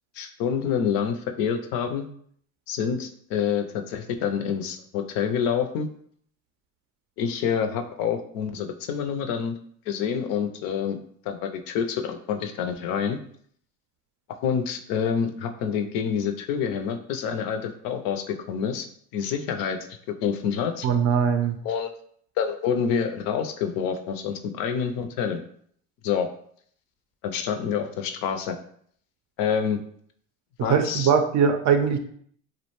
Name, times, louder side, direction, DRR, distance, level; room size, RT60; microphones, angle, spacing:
voice 1, 0.2-2.1 2.7-5.9 7.2-9.5 9.9-11.0 11.3-13.2 14.4-18.9 19.1-19.8 20.2-20.9 21.6-21.9 22.4-25.4 26.0-26.3 27.2-28.6 29.4-29.8 30.6-31.1, left 7 dB, 65° left, 6 dB, 0.5 m, -27 dB
voice 2, 20.8-21.6 30.6-32.0, right 7 dB, 50° right, 6 dB, 0.4 m, -21 dB
2.4 x 2.1 x 2.9 m, 0.63 s
hypercardioid pair, 75°, 37 cm